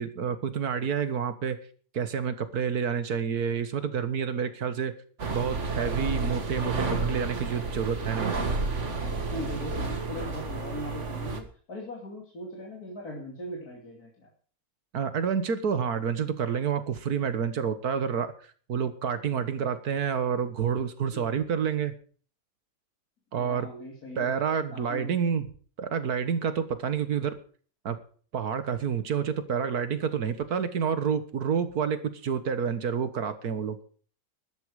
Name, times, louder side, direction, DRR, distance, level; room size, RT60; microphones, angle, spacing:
voice 1, 0.0-1.6 1.9-4.9 5.3-8.3 14.9-18.3 18.7-21.9 23.3-23.7 24.2-25.5 25.8-27.4 27.9-28.0 28.3-33.8, right 7 dB, 75° right, 11 dB, 1.9 m, -28 dB
sound 1, 5.2-11.4, right 3 dB, 50° right, 2.1 m, -31 dB
voice 2, 9.3-14.3 21.1-21.2 23.3-24.3 24.7-25.1, left 1 dB, 75° left, -1 dB, 3.3 m, -40 dB
14.0 x 12.5 x 4.9 m, 0.43 s
omnidirectional pair, 1.6 m